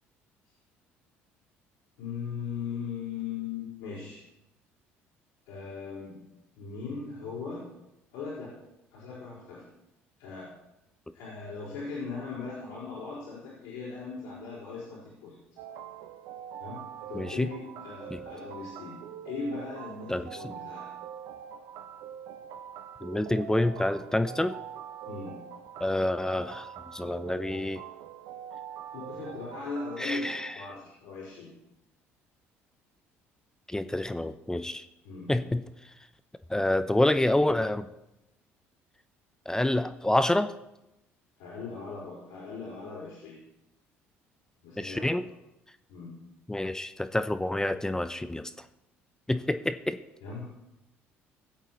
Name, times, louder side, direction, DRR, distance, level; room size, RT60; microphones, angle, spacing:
voice 1, 2.0-4.2 5.5-6.1 6.5-7.6 8.1-8.5 8.9-9.6 10.2-10.5 11.1-15.3 16.6-19.0 19.2-20.9 25.0-25.3 28.9-31.5 35.0-35.3 41.4-43.4 44.6-45.2 45.9-46.1 50.2-50.4, left 4 dB, 75° left, -9 dB, 4.7 m, -39 dB
sound 1, 15.6-30.5, right 9 dB, 65° right, 0.7 m, -44 dB
voice 2, 17.1-17.5 20.1-20.4 23.0-24.5 25.8-27.8 30.0-30.5 33.7-34.9 35.3-35.6 36.5-37.9 39.5-40.5 44.8-45.2 46.5-48.5 49.3-50.0, left 1 dB, 10° left, 11 dB, 0.6 m, -27 dB
18.5 x 8.0 x 3.1 m, 0.91 s
hypercardioid pair, 55°, 7 cm